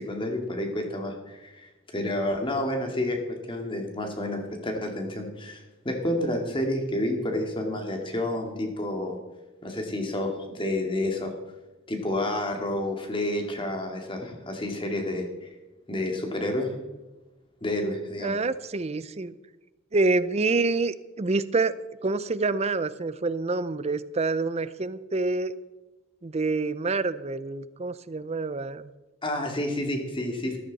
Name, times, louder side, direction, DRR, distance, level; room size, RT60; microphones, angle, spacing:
voice 1, 0.0-9.2 9.6-11.3 11.9-15.5 15.9-16.7 17.6-18.3 29.2-30.6, left 1 dB, 25° left, 3 dB, 2.3 m, -30 dB
voice 2, 18.2-19.3 19.9-21.7 22.0-25.5 26.2-28.9, right 3 dB, 30° right, 15 dB, 0.5 m, -27 dB
14.0 x 14.0 x 4.1 m, 1.1 s
head